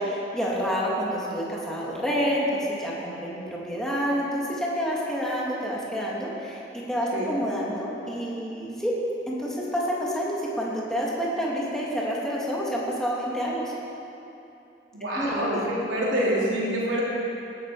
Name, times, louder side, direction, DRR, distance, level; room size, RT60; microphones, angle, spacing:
voice 1, 0.0-6.6 6.9-8.9 9.3-13.7 15.1-15.7, equal, 5° left, -6 dB, 2.6 m, -28 dB
voice 2, 14.9-17.0, equal, 90° right, -6 dB, 4.0 m, -26 dB
17.5 x 11.0 x 5.0 m, 2.9 s
head